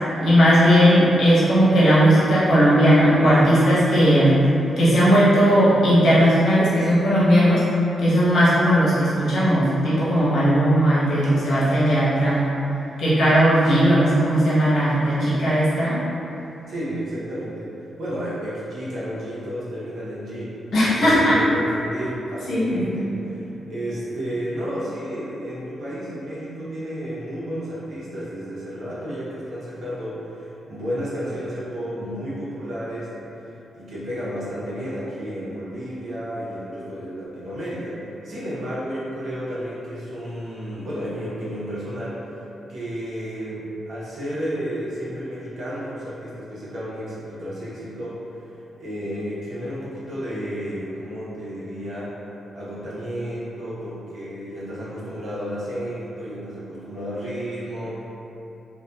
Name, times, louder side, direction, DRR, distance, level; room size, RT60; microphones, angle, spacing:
voice 1, 0.2-4.4 4.8-7.6 8.0-12.5 13.0-16.0 20.7-21.4 22.5-23.0, equal, 70° left, -10 dB, 0.9 m, -17 dB
voice 2, 16.7-33.1 33.4-42.3 42.7-52.2 52.5-58.0, equal, 75° right, -9 dB, 0.8 m, -32 dB
2.5 x 2.4 x 2.2 m, 2.9 s
supercardioid pair, 55°, 0 cm